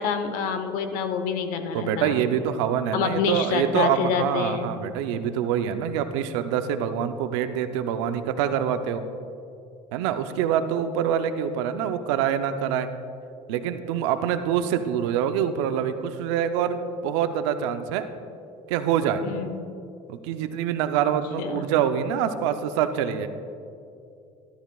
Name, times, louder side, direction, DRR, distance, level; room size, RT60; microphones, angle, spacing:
voice 1, 0.0-2.2 2.9-4.7 19.2-19.6 21.4-21.6, left 6 dB, 70° left, 8 dB, 1.1 m, -27 dB
voice 2, 1.7-9.0 9.9-12.9 13.5-18.1 18.7-19.2 20.1-23.3, right 9 dB, 85° right, 9 dB, 0.7 m, -25 dB
17.0 x 12.5 x 2.4 m, 2.6 s
supercardioid pair, 105°, 14 cm